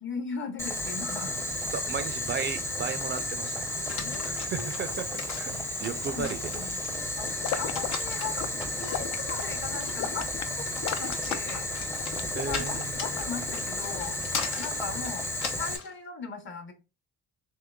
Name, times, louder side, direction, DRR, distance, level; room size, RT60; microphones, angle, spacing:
voice 1, 0.0-1.4 4.0-5.0 5.9-6.9 7.2-11.7 12.4-14.2 14.6-15.3 15.6-16.7, left 5 dB, 40° left, 6 dB, 0.9 m, -39 dB
Boiling, 0.6-15.8, left 1 dB, 10° left, 0.6 m, -33 dB
voice 2, 1.7-3.7 4.2-5.5 5.8-6.4 12.3-12.9, right 6 dB, 40° right, 10 dB, 0.4 m, -34 dB
sound 1, 3.9-15.9, left 6 dB, 75° left, 0.9 m, -38 dB
sound 2, 7.4-13.6, left 9 dB, 60° left, 0.5 m, -35 dB
3.6 x 2.9 x 2.2 m, 0.29 s
cardioid pair, 90°, 30 cm